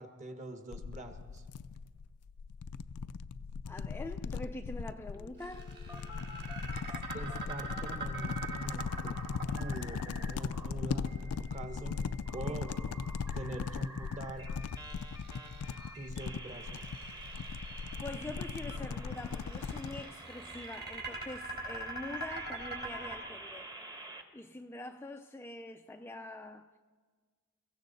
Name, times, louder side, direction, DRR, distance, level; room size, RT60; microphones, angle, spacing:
voice 1, 0.0-1.4 7.1-9.2 9.4-12.0 12.3-12.7 13.3-14.5 15.9-16.9, right 2 dB, 35° right, 1.3 m, -44 dB
sound 1, 0.7-20.0, left 5 dB, 75° left, 0.4 m, -39 dB
voice 2, 3.7-5.8 12.5-12.6 18.0-23.7 24.3-26.7, left 2 dB, 10° left, 0.3 m, -44 dB
sound 2, 5.1-7.8 8.1-10.7 11.1-24.2, right 1 dB, 15° right, 1.0 m, -49 dB
sound 3, 5.4-11.6 14.4-16.0 16.5-17.9 19.1-23.1, right 3 dB, 50° right, 4.1 m, -43 dB
22.5 x 15.5 x 4.1 m
head